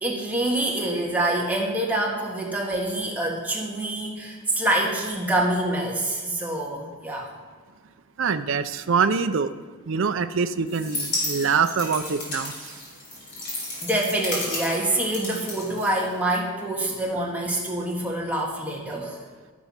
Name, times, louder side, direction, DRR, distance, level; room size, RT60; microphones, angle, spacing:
voice 1, 0.0-7.3 13.8-19.2, right 1 dB, 5° right, -3 dB, 1.8 m, -26 dB
voice 2, 8.2-9.5 9.9-12.7, right 5 dB, 60° right, 9 dB, 0.5 m, -24 dB
sound 1, 10.7-16.4, left 2 dB, 50° left, 4.0 m, -33 dB
12.0 x 9.1 x 5.7 m, 1.5 s
head